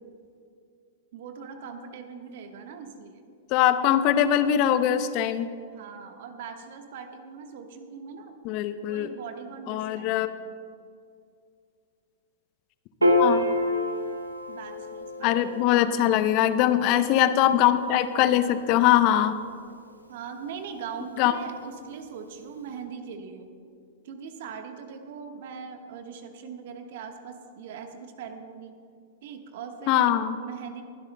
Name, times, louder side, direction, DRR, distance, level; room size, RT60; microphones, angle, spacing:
voice 1, 1.1-3.2 5.7-8.4 8.9-10.3 14.5-15.7 20.1-23.5 24.0-28.8 29.2-30.8, right 6 dB, 55° right, 5 dB, 1.2 m, -41 dB
voice 2, 3.5-5.5 8.4-9.1 9.7-10.3 13.2-13.4 15.2-19.4 21.2-21.3 29.9-30.4, left 11 dB, 40° left, 12 dB, 0.6 m, -22 dB
Piano, 13.0-19.6, left 1 dB, 85° right, 1.0 m, -29 dB
21.0 x 12.0 x 2.2 m, 2.3 s
figure-of-eight pair, 100°, 0 cm